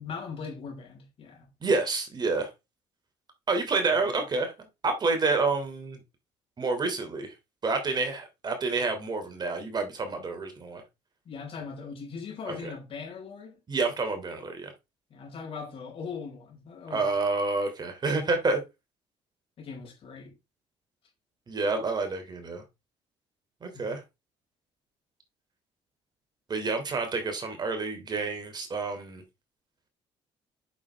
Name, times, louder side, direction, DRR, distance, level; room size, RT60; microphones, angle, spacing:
voice 1, 0.0-1.5 3.9-4.2 11.3-13.6 15.1-17.1 19.6-20.3 23.7-23.9, left 5 dB, 55° left, 5.3 m, -40 dB
voice 2, 1.6-2.5 3.5-4.5 4.8-6.0 6.6-7.3 7.6-10.8 12.5-12.7 13.7-14.7 16.9-18.6 21.5-22.6 23.6-24.0 26.5-29.2, right 3 dB, 40° right, 3.1 m, -28 dB
8.4 x 7.1 x 3.6 m
supercardioid pair, 80°, 11 cm